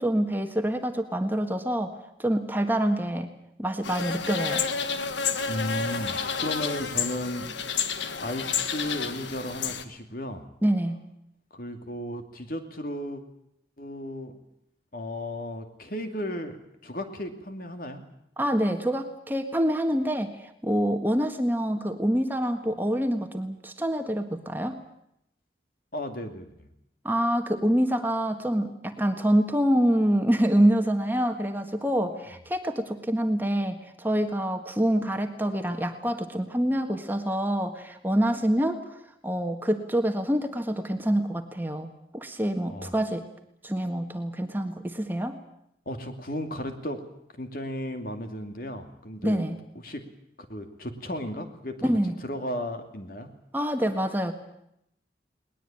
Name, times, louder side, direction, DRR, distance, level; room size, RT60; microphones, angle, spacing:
voice 1, 0.0-1.9 2.2-3.3 3.6-4.6 10.6-11.0 18.4-24.8 27.0-38.8 39.2-43.3 43.6-45.4 49.2-49.6 51.8-52.2 53.5-54.3, equal, 10° right, 5 dB, 1.5 m, -26 dB
sound 1, 3.8-9.8, left 6 dB, 85° left, 1.6 m, -30 dB
voice 2, 5.5-10.4 11.5-13.2 13.8-14.4 14.9-16.6 16.8-18.0 25.9-26.7 42.7-42.9 45.9-47.0 47.4-49.4 49.8-50.1 50.5-51.9 52.2-53.3, left 1 dB, 50° left, 6 dB, 2.5 m, -35 dB
20.5 x 20.0 x 8.9 m, 0.76 s
head